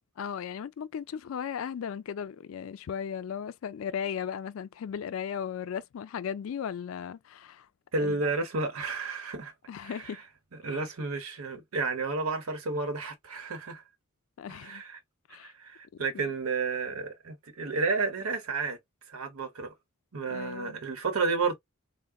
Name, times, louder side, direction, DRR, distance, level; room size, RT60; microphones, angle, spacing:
voice 1, 0.2-7.7 8.0-8.3 9.7-10.2 10.7-10.8 14.4-14.8 15.3-15.5 20.3-20.8, left 8 dB, 75° left, 0.3 m, -36 dB
voice 2, 7.9-9.5 9.8-10.0 10.6-13.8 14.5-15.0 15.4-18.8 19.1-19.7 20.1-21.5, right 4 dB, 80° right, 0.9 m, -31 dB
3.7 x 2.1 x 2.2 m
head